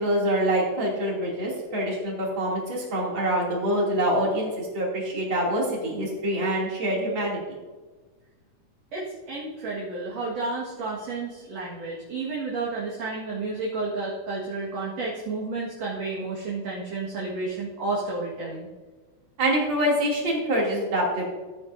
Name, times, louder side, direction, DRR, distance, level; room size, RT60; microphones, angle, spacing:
voice 1, 0.0-7.6 19.4-21.2, right 1 dB, 35° right, -3 dB, 3.1 m, -25 dB
voice 2, 8.9-18.7, right 3 dB, 50° right, -6 dB, 2.4 m, -31 dB
16.0 x 9.4 x 2.7 m, 1.3 s
omnidirectional pair, 4.5 m